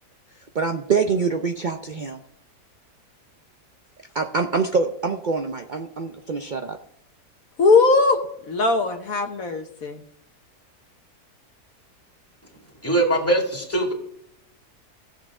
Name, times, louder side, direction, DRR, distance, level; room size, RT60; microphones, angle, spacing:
voice 1, 0.5-2.2 4.1-6.8, right 5 dB, 65° right, 5 dB, 0.4 m, -25 dB
voice 2, 7.6-8.2 8.5-10.0, left 3 dB, 60° left, 5 dB, 1.4 m, -19 dB
voice 3, 12.8-13.9, right 1 dB, 10° left, 0 dB, 2.3 m, -21 dB
17.0 x 7.5 x 3.7 m, 0.75 s
omnidirectional pair, 1.8 m